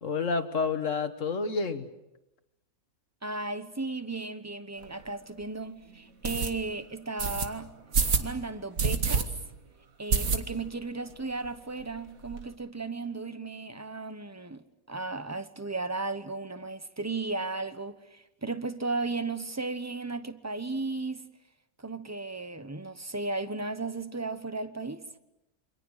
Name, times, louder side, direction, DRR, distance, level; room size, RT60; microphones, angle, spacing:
voice 1, 0.0-1.9, left 4 dB, 60° left, 1.7 m, -29 dB
voice 2, 3.2-7.7 8.2-9.3 10.0-21.2 21.8-25.0, right 3 dB, 15° right, 0.9 m, -35 dB
sound 1, 4.8-4.9 5.4-5.5 6.2-6.5 7.2-7.5 7.9-8.3 8.8-9.2 9.5-9.6 10.1-10.8 11.1-11.2 11.4-11.5 11.8-12.4, right 5 dB, 70° right, 2.1 m, -27 dB
28.5 x 25.5 x 6.5 m
omnidirectional pair, 1.5 m